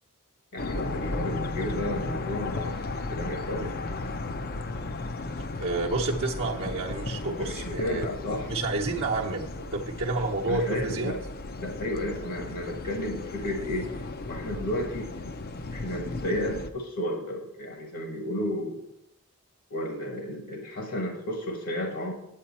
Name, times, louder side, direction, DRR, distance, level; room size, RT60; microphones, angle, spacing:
voice 1, 0.5-2.8 3.1-3.7 7.2-8.5 10.5-11.2 11.6-13.9 14.3-15.1 15.7-18.8 19.7-22.1, left 1 dB, 60° left, 2 dB, 1.3 m, -32 dB
sound 1, 0.6-16.7, left 2 dB, 40° left, 0.5 m, -35 dB
voice 2, 5.6-8.1 8.5-11.1, right 3 dB, 60° right, -5 dB, 0.9 m, -29 dB
9.1 x 8.5 x 4.2 m, 0.85 s
head